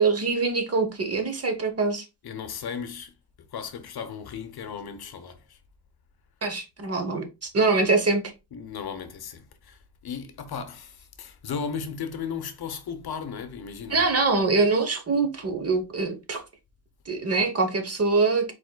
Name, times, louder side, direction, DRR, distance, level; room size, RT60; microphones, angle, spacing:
voice 1, 0.0-2.0 6.4-8.3 13.9-16.4 17.1-18.5, right 3 dB, 30° right, 0.9 m, -24 dB
voice 2, 2.2-3.1 3.5-5.6 8.5-14.1, left 6 dB, 55° left, 0.8 m, -36 dB
5.1 x 4.2 x 2.2 m
wide cardioid pair, 150°, 47 cm